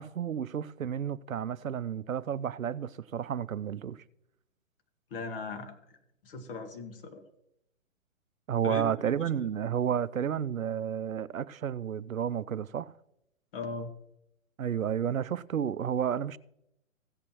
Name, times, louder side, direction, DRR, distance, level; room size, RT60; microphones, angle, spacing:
voice 1, 0.0-4.0 8.5-12.9 14.6-16.4, right 8 dB, 85° right, 0.5 m, -31 dB
voice 2, 5.1-5.7 6.2-7.2 8.6-8.9 9.2-9.3 13.5-13.9, left 3 dB, 45° left, 1.7 m, -38 dB
16.0 x 8.4 x 3.0 m
figure-of-eight pair, 125°, 40 cm